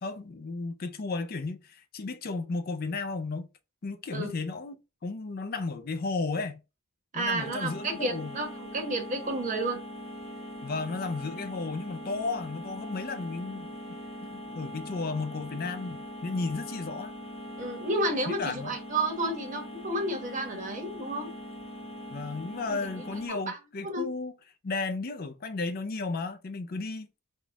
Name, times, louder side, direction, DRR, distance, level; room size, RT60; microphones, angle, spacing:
voice 1, 0.0-3.5 3.8-4.8 5.0-6.6 7.1-8.4 10.6-13.7 14.2-17.1 18.3-18.8 22.1-24.3 24.6-27.1, left 3 dB, 45° left, 0.5 m, -34 dB
voice 2, 7.1-9.8 17.6-21.3 22.7-22.8 23.3-23.6 23.8-24.1, right 2 dB, 35° right, 1.1 m, -31 dB
sound 1, 7.4-23.3, equal, 25° left, 1.1 m, -41 dB
3.6 x 2.4 x 3.9 m
head